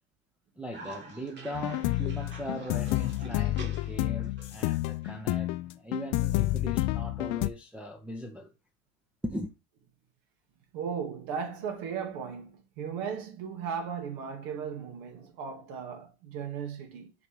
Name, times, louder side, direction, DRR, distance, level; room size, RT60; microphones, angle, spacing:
voice 1, 0.6-5.5 5.8-8.5 9.2-9.5, equal, 5° right, 0.6 m, -39 dB
Cough, 0.7-5.8, right 3 dB, 30° right, 1.7 m, -47 dB
sound 1, 1.5-7.5, left 17 dB, 50° left, 0.5 m, -29 dB
voice 2, 10.7-17.1, right 7 dB, 60° right, 2.0 m, -36 dB
6.7 x 5.1 x 3.3 m
supercardioid pair, 140°, 34 cm